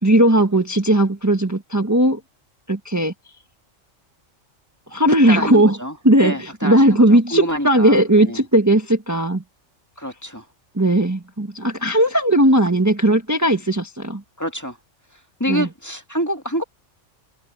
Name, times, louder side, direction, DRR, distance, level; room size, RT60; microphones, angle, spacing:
voice 1, 0.0-2.2 2.7-3.1 4.9-5.8 6.0-9.4 10.7-14.2 15.5-15.7, right 1 dB, 15° right, 1.3 m, -17 dB
voice 2, 5.1-8.0 8.3-8.4 10.0-10.4 14.4-14.8 15.4-16.6, equal, 15° left, 1.9 m, -27 dB
omnidirectional pair, 1.3 m